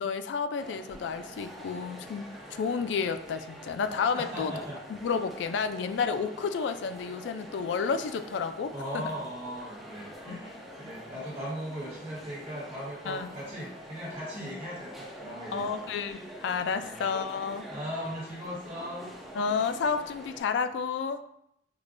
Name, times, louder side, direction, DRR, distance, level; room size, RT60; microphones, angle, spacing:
voice 1, 0.0-2.2 2.5-4.5 4.9-9.0 10.3-10.4 13.1-13.3 15.5-17.6 19.4-21.2, left 5 dB, 75° left, 9 dB, 0.3 m, -31 dB
sound 1, 0.6-20.4, equal, ahead, 0.8 m, -46 dB
voice 2, 4.1-4.8 8.7-15.8 16.8-16.9 17.7-19.1, equal, 35° right, -7 dB, 1.2 m, -38 dB
4.9 x 2.2 x 2.5 m, 0.75 s
head